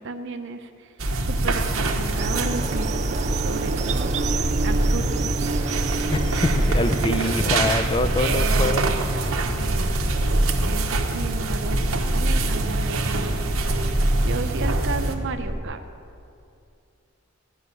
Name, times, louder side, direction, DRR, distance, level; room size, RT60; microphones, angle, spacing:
voice 1, 0.0-4.1 4.6-5.3 7.0-7.3 8.2-13.5 14.2-15.8, right 3 dB, 60° right, 6 dB, 0.7 m, -33 dB
sound 1, 1.0-15.2, right 2 dB, 90° right, 1.1 m, -25 dB
sound 2, 2.2-7.7, right 5 dB, 35° right, 0.4 m, -30 dB
sound 3, 4.0-15.6, right 1 dB, ahead, 0.9 m, -27 dB
voice 2, 6.1-8.8, left 2 dB, 25° left, 9 dB, 0.6 m, -24 dB
13.5 x 6.1 x 9.6 m, 2.5 s
head